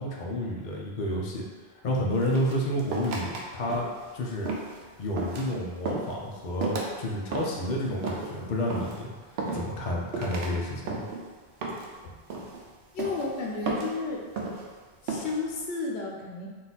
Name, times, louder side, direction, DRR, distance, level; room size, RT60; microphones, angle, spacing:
voice 1, 0.0-1.4 1.8-3.9 4.1-4.5 5.0-11.1, left 1 dB, 50° left, -2 dB, 0.7 m, -30 dB
sound 1, 2.2-3.4 3.7-4.1 4.4-4.8 5.2-5.5 5.8-6.1 6.6-6.9 7.3-7.7 8.0-8.3 8.7-9.0 9.4-9.9 10.1-10.5 10.9-11.2 11.6-12.0 12.3-12.6 13.0-13.3 13.7-14.0 14.4-14.7 15.1-15.4, right 3 dB, 75° right, 0.9 m, -33 dB
voice 2, 12.9-14.3 15.0-16.5, left 3 dB, 80° left, -1 dB, 0.9 m, -32 dB
3.9 x 2.5 x 4.0 m, 1.4 s
omnidirectional pair, 1.1 m